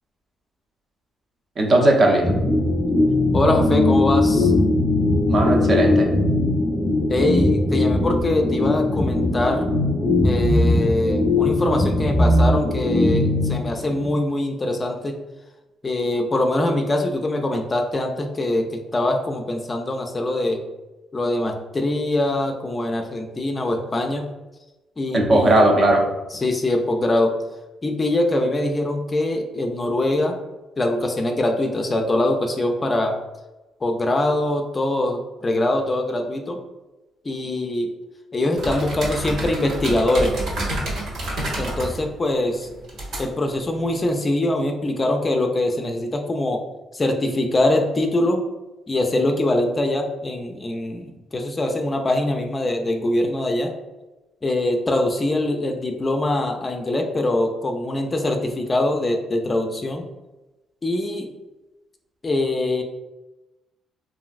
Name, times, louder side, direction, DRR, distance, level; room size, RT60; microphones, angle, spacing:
voice 1, 1.6-2.4 5.3-6.1 25.1-26.1, right 1 dB, 45° right, 1 dB, 0.6 m, -17 dB
sound 1, 2.2-14.1, left 2 dB, 10° right, 0.7 m, -20 dB
voice 2, 3.3-4.5 7.1-9.7 10.2-15.2 15.8-20.6 21.1-24.3 25.0-25.6 26.3-27.3 27.8-30.4 30.8-33.2 33.8-36.6 37.2-37.9 38.3-40.3 41.6-42.7 43.2-46.6 46.9-48.5 48.9-53.7 54.4-60.1 60.8-61.3 62.2-62.8, left 1 dB, 30° left, 3 dB, 0.4 m, -23 dB
sound 2, 38.6-44.2, right 1 dB, 75° right, 1.1 m, -30 dB
3.0 x 2.6 x 2.3 m, 1.0 s
cardioid pair, 90°, 0 cm